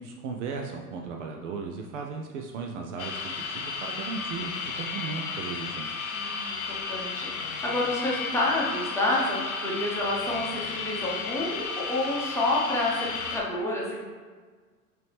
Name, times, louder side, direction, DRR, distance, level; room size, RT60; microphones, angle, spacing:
voice 1, 0.0-5.9, right 5 dB, 50° right, 2 dB, 0.5 m, -36 dB
sound 1, 3.0-13.4, left 5 dB, 60° left, 0.8 m, -33 dB
voice 2, 6.1-14.0, left 2 dB, 5° left, -5 dB, 0.9 m, -29 dB
4.7 x 3.0 x 3.4 m, 1.5 s
figure-of-eight pair, 85°, 47 cm